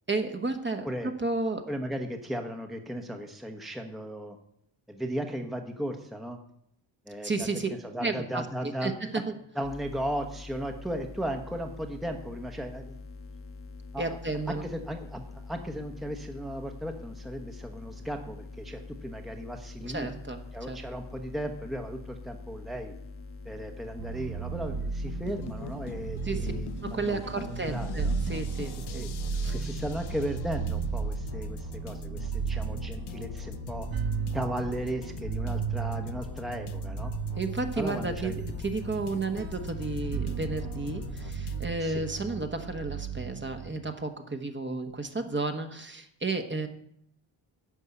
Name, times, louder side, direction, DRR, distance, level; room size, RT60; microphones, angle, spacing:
voice 1, 0.1-1.7 7.2-7.7 8.0-8.4 8.8-9.3 14.0-14.6 19.8-20.4 20.7-20.8 26.2-26.5 26.8-29.0 29.3-29.5 37.4-46.7, right 3 dB, 25° right, 6 dB, 1.2 m, -32 dB
voice 2, 1.7-4.4 4.9-6.4 7.1-9.2 9.5-13.0 13.9-14.2 14.5-20.1 20.5-22.9 23.4-28.2 29.0-29.1 29.5-33.9 34.3-37.1 37.8-38.3 41.8-42.1, equal, ahead, 4 dB, 1.0 m, -36 dB
sound 1, 9.6-28.1, left 3 dB, 25° left, 1.1 m, -44 dB
sound 2, 24.0-43.7, right 6 dB, 50° right, 1.1 m, -35 dB
sound 3, 25.1-41.7, left 9 dB, 55° left, 0.7 m, -42 dB
11.0 x 5.4 x 8.3 m, 0.72 s
cardioid pair, 95°, 48 cm